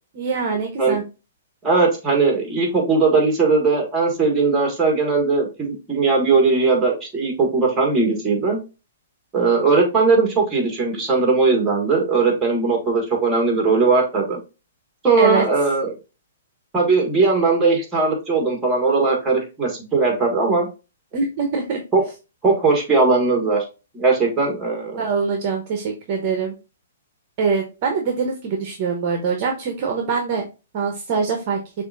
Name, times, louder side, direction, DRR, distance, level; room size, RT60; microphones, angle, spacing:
voice 1, 0.1-1.0 15.2-15.4 21.1-21.8 25.0-26.5 27.4-30.4 30.7-31.6, right 5 dB, 40° right, 3 dB, 0.8 m, -23 dB
voice 2, 1.6-8.6 9.3-14.4 15.0-15.9 16.7-20.7 21.9-22.0 22.4-23.6 23.9-25.0, right 4 dB, 10° right, 1 dB, 1.5 m, -19 dB
6.6 x 2.5 x 2.4 m, 0.30 s
hypercardioid pair, 145°, 0 cm